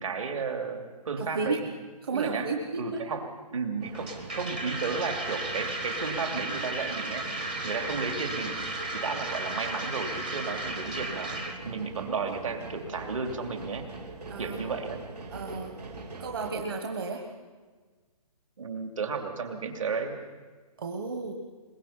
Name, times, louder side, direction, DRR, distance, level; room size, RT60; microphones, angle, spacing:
voice 1, 0.0-1.7 2.1-2.5 2.8-7.2 7.6-8.6 8.9-11.3 11.6-13.9 14.4-15.0 16.4-16.7 18.6-20.2, right 5 dB, 55° right, 5 dB, 2.8 m, -33 dB
voice 2, 1.2-1.6 2.0-3.0 14.3-14.6 15.3-15.8 16.2-17.2 20.8-21.3, right 4 dB, 35° right, 3 dB, 1.5 m, -33 dB
sound 1, 3.8-16.5, right 3 dB, 90° right, 3.0 m, -42 dB
sound 2, 3.9-11.6, right 2 dB, 15° right, 0.6 m, -35 dB
22.5 x 21.5 x 5.7 m, 1.4 s
hypercardioid pair, 180°, 20 cm